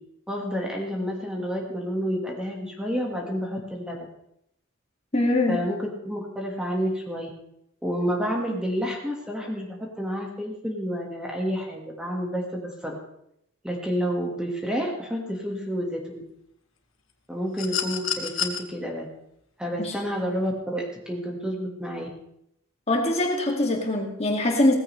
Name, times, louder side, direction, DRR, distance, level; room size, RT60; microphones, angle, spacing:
voice 1, 0.3-4.1 5.5-7.3 7.8-13.0 13.6-16.2 17.3-19.1 19.6-22.1, equal, 5° right, 0 dB, 1.7 m, -29 dB
voice 2, 5.1-5.7 19.8-19.9 22.9-24.7, left 1 dB, 30° left, 1 dB, 2.2 m, -23 dB
sound 1, 17.6-18.6 20.1-20.2, left 7 dB, 70° left, 1.7 m, -29 dB
17.5 x 15.0 x 3.3 m, 0.78 s
head